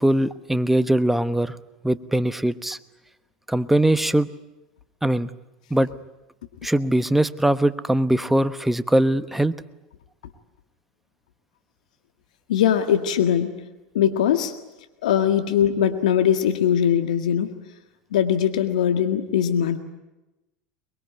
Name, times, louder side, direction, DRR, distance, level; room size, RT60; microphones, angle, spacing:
voice 1, 0.0-1.6 1.8-2.8 3.5-4.3 5.0-5.3 5.7-5.9 6.6-9.5, right 1 dB, 5° right, 13 dB, 1.1 m, -21 dB
voice 2, 12.5-13.6 13.9-14.5 15.0-17.5 18.1-19.8, left 9 dB, 80° left, 8 dB, 1.8 m, -21 dB
23.0 x 22.0 x 9.5 m, 1.0 s
hypercardioid pair, 90°, 4 cm